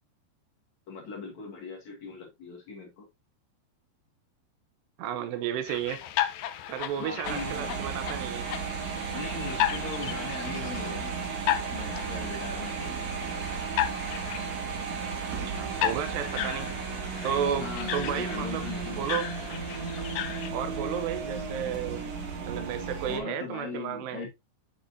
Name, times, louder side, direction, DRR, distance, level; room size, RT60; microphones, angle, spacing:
voice 1, 0.9-3.1 7.0-7.9 9.1-11.2 11.5-13.7 16.4-16.7 17.6-19.2 23.1-24.3, left 4 dB, 50° left, 2.8 m, -40 dB
voice 2, 5.0-6.0 6.7-8.5 15.3-16.7 17.2-19.3 20.5-22.0 22.4-24.3, right 8 dB, 80° right, 2.8 m, -33 dB
sound 1, 5.7-20.5, left 13 dB, 85° left, 2.0 m, -35 dB
sound 2, 7.2-23.2, right 5 dB, 50° right, 2.3 m, -34 dB
7.6 x 6.4 x 2.7 m
omnidirectional pair, 5.1 m